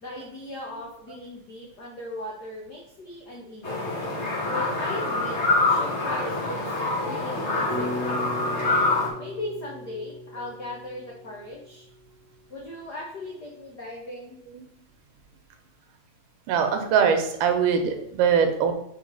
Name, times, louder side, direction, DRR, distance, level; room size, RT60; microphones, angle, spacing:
voice 1, 0.0-3.9 4.5-5.4 5.7-6.6 7.0-8.2 9.2-11.9 12.5-14.4, left 2 dB, 80° left, -2 dB, 0.9 m, -38 dB
sound 1, 3.6-9.1, left 2 dB, 45° left, 0.8 m, -25 dB
sound 2, 7.7-12.0, left 1 dB, 65° right, 1.6 m, -37 dB
voice 2, 16.5-18.7, right 7 dB, 90° right, 6 dB, 2.5 m, -22 dB
5.2 x 4.6 x 5.4 m, 0.76 s
omnidirectional pair, 3.6 m